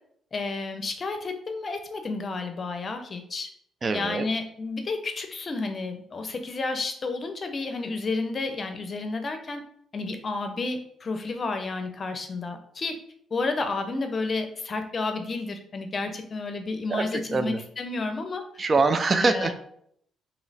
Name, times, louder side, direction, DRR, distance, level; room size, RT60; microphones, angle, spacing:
voice 1, 0.3-3.5 3.9-9.6 9.9-13.0 13.3-18.4 19.2-19.5, left 3 dB, 40° left, 6 dB, 0.6 m, -31 dB
voice 2, 3.8-4.3 16.9-17.1 17.3-17.6 18.6-19.6, right 3 dB, 35° right, 9 dB, 0.4 m, -23 dB
3.1 x 2.9 x 4.0 m, 0.67 s
cardioid pair, 90°, 0 cm